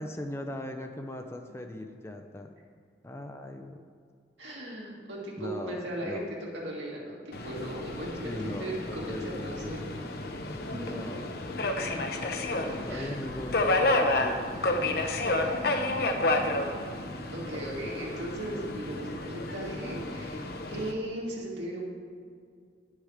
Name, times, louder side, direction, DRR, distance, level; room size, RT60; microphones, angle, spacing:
voice 1, 0.0-2.5 3.0-3.8 5.4-6.4 8.2-10.3 10.7-15.6 15.9-16.5 17.5-17.7, left 1 dB, 15° left, 5 dB, 0.5 m, -40 dB
voice 2, 4.4-6.2 6.5-8.3 8.6-9.8 10.4-11.1 12.9-13.1 17.3-21.8, right 1 dB, 80° right, -4 dB, 2.5 m, -37 dB
Subway metro underground, 7.3-20.9, left 2 dB, 55° left, 0.7 m, -31 dB
10.5 x 6.4 x 4.9 m, 2.2 s
head